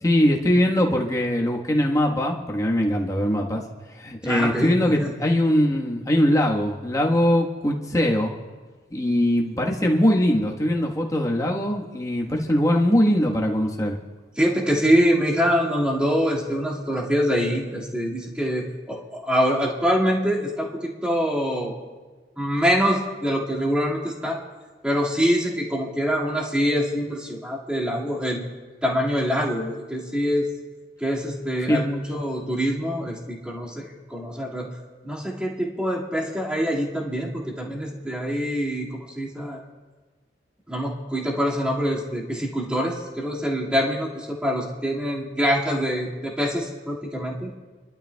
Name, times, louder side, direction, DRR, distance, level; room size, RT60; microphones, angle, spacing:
voice 1, 0.0-3.6 4.0-8.3 8.9-14.0 31.6-31.8, equal, 20° left, -1 dB, 1.3 m, -21 dB
voice 2, 4.2-5.1 14.4-21.7 22.4-24.4 24.8-28.4 28.8-30.5 31.0-34.7 35.0-39.6 40.7-47.5, equal, 5° right, -5 dB, 2.0 m, -25 dB
29.0 x 12.0 x 2.3 m, 1.3 s
head